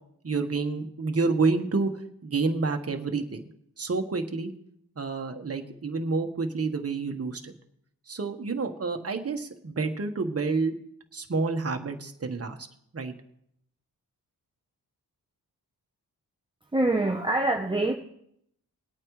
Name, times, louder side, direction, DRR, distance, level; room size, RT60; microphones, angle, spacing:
voice 1, 0.2-3.4 3.8-4.5 5.0-7.5 8.1-10.7 11.1-12.7 12.9-13.1, right 4 dB, 40° right, 5 dB, 1.4 m, -29 dB
voice 2, 16.7-17.9, right 2 dB, 15° right, 1 dB, 0.9 m, -24 dB
22.0 x 8.8 x 3.2 m, 0.73 s
cardioid pair, 75°, 37 cm